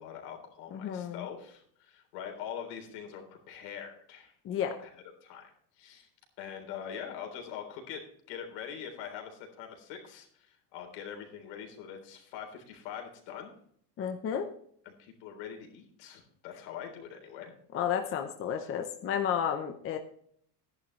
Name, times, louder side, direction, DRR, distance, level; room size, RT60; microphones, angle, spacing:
voice 1, 0.0-4.3 4.8-5.5 5.8-6.1 6.4-8.0 8.3-13.5 14.9-17.5, left 8 dB, 75° left, 3 dB, 3.8 m, -43 dB
voice 2, 0.7-1.3 4.4-4.8 14.0-14.5 17.7-20.0, left 8 dB, 25° left, 6 dB, 0.7 m, -32 dB
13.0 x 10.5 x 3.2 m, 0.63 s
cardioid pair, 165°, 48 cm